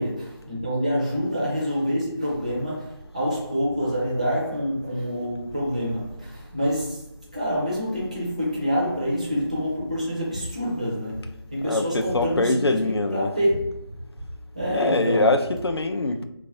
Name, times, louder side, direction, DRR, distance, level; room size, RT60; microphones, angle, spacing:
voice 1, 0.0-7.1 7.3-13.7 14.5-15.3, equal, 15° right, 0.4 m, -27 dB
voice 2, 11.6-13.4 14.7-16.3, left 2 dB, 80° left, 0.4 m, -23 dB
3.1 x 2.3 x 2.6 m
figure-of-eight pair, 160°, 13 cm